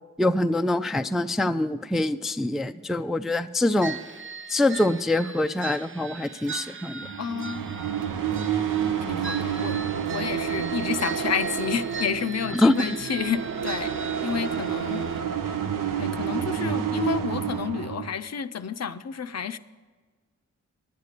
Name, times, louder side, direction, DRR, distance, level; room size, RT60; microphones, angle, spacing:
voice 1, 0.2-4.0 4.5-7.1 12.5-12.9, left 1 dB, ahead, 9 dB, 0.3 m, -24 dB
sound 1, 3.8-15.2, right 5 dB, 40° right, 0.6 m, -39 dB
sound 2, 7.0-18.1, right 8 dB, 85° right, 0.7 m, -29 dB
voice 2, 7.2-7.7 9.1-9.8 10.1-13.9 14.2-15.0 16.0-19.6, left 7 dB, 55° left, 12 dB, 0.5 m, -30 dB
10.5 x 8.2 x 6.6 m, 1.4 s
cardioid pair, 45°, 32 cm